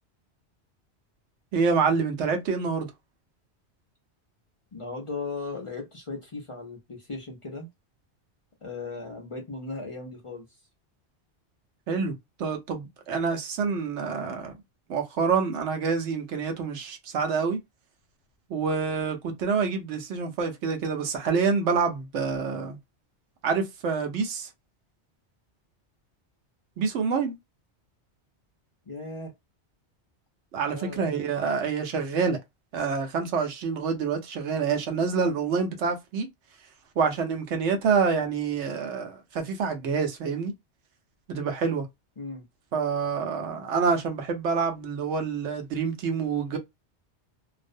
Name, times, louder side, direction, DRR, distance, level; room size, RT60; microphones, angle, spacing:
voice 1, 1.5-2.9 11.9-14.5 14.9-17.6 18.5-22.8 23.4-24.5 26.8-27.3 30.5-32.4 32.7-36.3 37.0-40.5 41.3-41.9 42.7-46.6, right 5 dB, 85° right, 1.0 m, -27 dB
voice 2, 4.7-7.7 8.6-10.4 28.9-29.3 30.7-31.0 42.2-42.4, left 3 dB, 40° left, 0.5 m, -37 dB
2.4 x 2.0 x 2.5 m
omnidirectional pair, 1.2 m